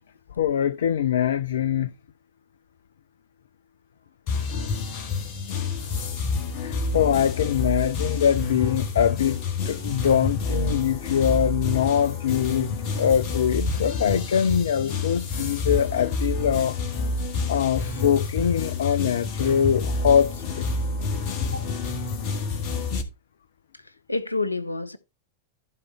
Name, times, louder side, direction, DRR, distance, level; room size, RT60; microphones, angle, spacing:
voice 1, 0.4-1.9 6.6-9.4 9.7-16.8 17.5-20.7, left 8 dB, 65° left, 0.4 m, -23 dB
sound 1, 4.3-23.0, left 3 dB, 45° left, 2.0 m, -28 dB
voice 2, 24.1-25.0, left 3 dB, 85° left, 0.9 m, -28 dB
14.5 x 5.0 x 3.3 m
figure-of-eight pair, 90°, 0 cm